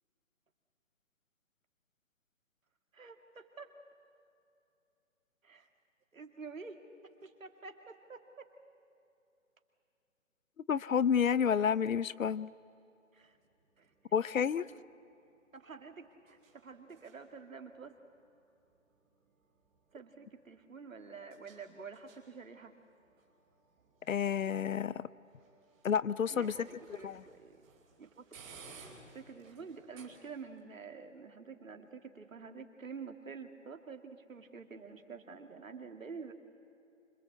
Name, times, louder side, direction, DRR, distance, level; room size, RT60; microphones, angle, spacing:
voice 1, 2.9-3.7 5.4-5.7 6.1-6.8 7.2-8.5 13.1-13.4 13.8-13.9 14.7-14.8 15.5-18.0 19.9-22.7 26.3-27.6 28.0-28.2 29.0-36.3, right 5 dB, 80° right, 5 dB, 2.5 m, -48 dB
voice 2, 10.7-12.5 14.1-14.6 24.1-25.0 25.8-26.7 27.0-27.2, left 7 dB, 80° left, 19 dB, 0.8 m, -30 dB
sound 1, 13.2-30.6, right 4 dB, 15° right, 2.6 m, -61 dB
25.5 x 21.5 x 8.0 m, 2.7 s
hypercardioid pair, 160°, 39 cm